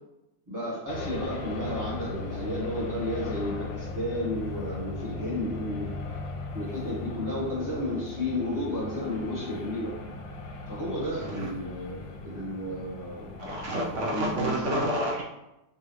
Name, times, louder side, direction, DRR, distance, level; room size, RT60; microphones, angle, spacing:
voice 1, 0.5-6.0 6.5-10.0 10.7-13.3 13.6-13.7 14.0-14.6, left 1 dB, 10° right, -7 dB, 1.1 m, -32 dB
sound 1, 0.9-14.7, left 3 dB, 85° left, 1.4 m, -38 dB
voice 2, 13.4-15.2, right 1 dB, 55° right, -3 dB, 0.9 m, -29 dB
4.6 x 3.0 x 3.2 m, 0.91 s
omnidirectional pair, 1.9 m